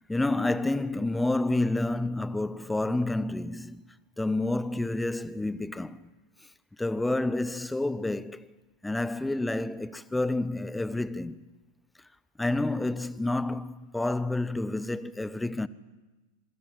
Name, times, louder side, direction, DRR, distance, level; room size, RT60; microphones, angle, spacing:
voice 1, 0.0-6.1 6.8-8.5 8.8-11.4 12.4-15.7, left 2 dB, 5° left, 0.9 m, -29 dB
26.0 x 25.0 x 7.6 m
figure-of-eight pair, 90°, 0 cm